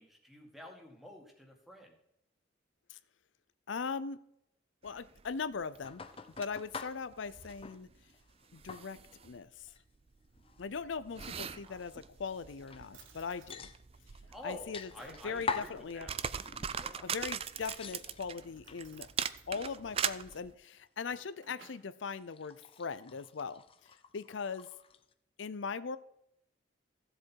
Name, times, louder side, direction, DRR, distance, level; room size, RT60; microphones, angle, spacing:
voice 1, 0.0-2.0 11.2-11.8 14.3-16.1 16.7-17.1, left 1 dB, ahead, 2 dB, 2.0 m, -50 dB
voice 2, 3.7-4.2 4.8-6.1 6.4-7.9 8.5-9.0 9.2-9.7 10.6-13.7 14.4-16.1 17.0-19.1 19.5-24.7 25.4-26.0, left 5 dB, 80° left, 14 dB, 0.5 m, -40 dB
sound 1, 4.8-20.5, right 8 dB, 30° right, 0.4 m, -42 dB
sound 2, 5.8-7.9 8.1-9.3 9.7-9.8 10.4-11.6 12.0-12.1 12.6-13.2 13.5-14.2 14.7-15.8 16.4-16.8 17.2-18.9 19.2-20.1 20.4-21.2 22.0-25.1, left 5 dB, 30° left, 0.7 m, -45 dB
Drawer open or close, 11.0-12.0 12.5-12.6 12.9-13.6 14.2-15.3 17.2-17.7 18.5-19.5 20.9-21.9, right 5 dB, 90° right, 2.1 m, -61 dB
15.5 x 7.6 x 4.6 m, 0.78 s
head